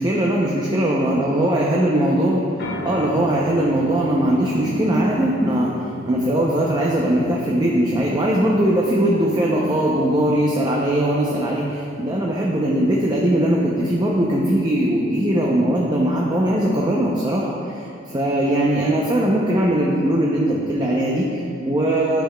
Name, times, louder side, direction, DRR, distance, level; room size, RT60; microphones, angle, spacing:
voice 1, 0.0-2.5 2.8-5.7 6.0-22.2, right 1 dB, 20° right, -3 dB, 0.5 m, -20 dB
sound 1, 2.6-14.4, left 2 dB, 55° left, 0.7 m, -40 dB
10.0 x 5.6 x 2.2 m, 2.4 s
head